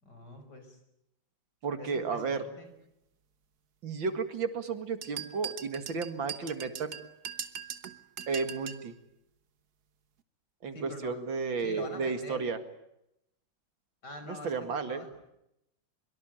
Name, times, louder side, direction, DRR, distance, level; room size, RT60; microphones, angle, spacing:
voice 1, 0.0-0.8 1.8-2.7 10.7-11.2 11.6-12.4 14.0-15.2, left 2 dB, 55° left, 7 dB, 6.0 m, -45 dB
voice 2, 1.6-2.4 3.8-7.0 8.3-8.9 10.6-12.6 14.3-15.1, right 5 dB, 75° right, 9 dB, 2.8 m, -33 dB
sound 1, 5.0-8.9, right 8 dB, 55° right, 1.6 m, -41 dB
24.5 x 23.5 x 9.1 m, 0.82 s
omnidirectional pair, 2.1 m